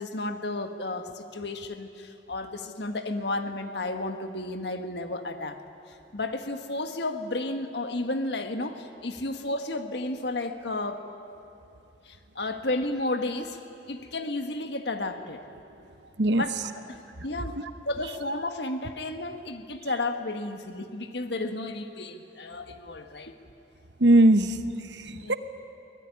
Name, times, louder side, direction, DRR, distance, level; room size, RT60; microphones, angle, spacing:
voice 1, 0.0-5.6 6.1-11.0 12.1-13.6 13.9-15.4 16.3-16.6 16.9-17.0 17.2-17.5 17.8-23.3 25.1-25.4, left 2 dB, 65° left, 6 dB, 1.6 m, -32 dB
voice 2, 24.0-25.4, right 1 dB, 75° right, 10 dB, 1.1 m, -21 dB
23.5 x 19.0 x 9.8 m, 2.7 s
head